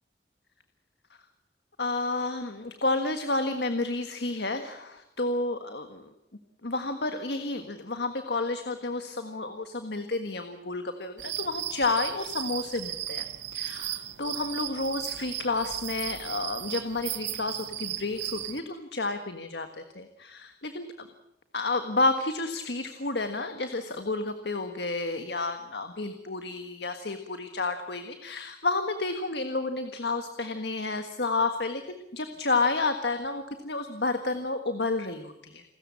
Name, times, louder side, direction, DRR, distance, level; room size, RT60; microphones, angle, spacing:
voice 1, 1.8-6.1 6.6-13.2 13.5-21.1 21.5-35.7, left 3 dB, 70° left, 7 dB, 1.6 m, -30 dB
sound 1, 11.2-18.6, right 13 dB, 90° right, 1.2 m, -36 dB
29.0 x 14.0 x 8.5 m, 0.87 s
head